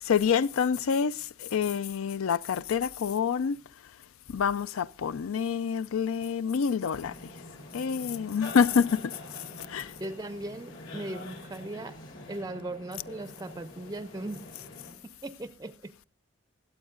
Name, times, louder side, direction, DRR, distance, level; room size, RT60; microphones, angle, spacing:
voice 1, 0.0-3.6 4.3-7.3 7.7-9.2 9.6-9.9, left 6 dB, 85° left, 0.4 m, -27 dB
sound 1, 6.9-14.9, left 1 dB, 60° left, 3.4 m, -46 dB
voice 2, 10.0-12.0 12.3-14.5 15.0-15.9, right 2 dB, 15° right, 0.5 m, -38 dB
23.0 x 8.1 x 2.4 m
head